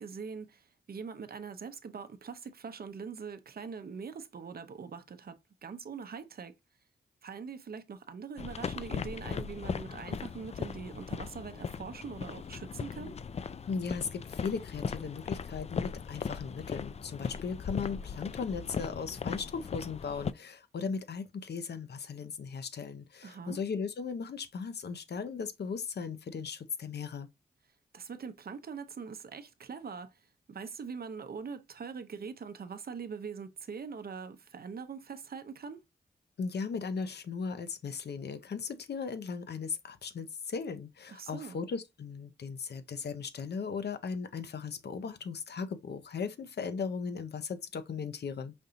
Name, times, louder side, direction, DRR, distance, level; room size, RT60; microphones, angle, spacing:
voice 1, 0.0-6.5 7.2-13.2 23.2-23.6 27.9-30.1 30.5-35.8 41.1-41.6, right 5 dB, 55° right, 0.6 m, -43 dB
sound 1, 8.4-20.3, left 6 dB, 35° left, 0.4 m, -38 dB
voice 2, 13.7-27.3 36.4-48.5, left 5 dB, 60° left, 0.7 m, -37 dB
5.2 x 2.7 x 2.5 m
cardioid pair, 50°, 19 cm